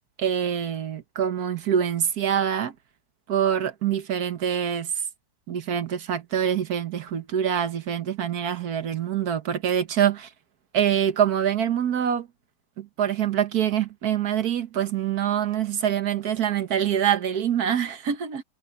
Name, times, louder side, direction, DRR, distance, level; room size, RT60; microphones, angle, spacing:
voice 1, 0.2-2.7 3.3-4.9 5.5-10.2 10.7-12.3 12.8-18.4, right 9 dB, 80° right, 1.7 m, -25 dB
omnidirectional pair, 1.6 m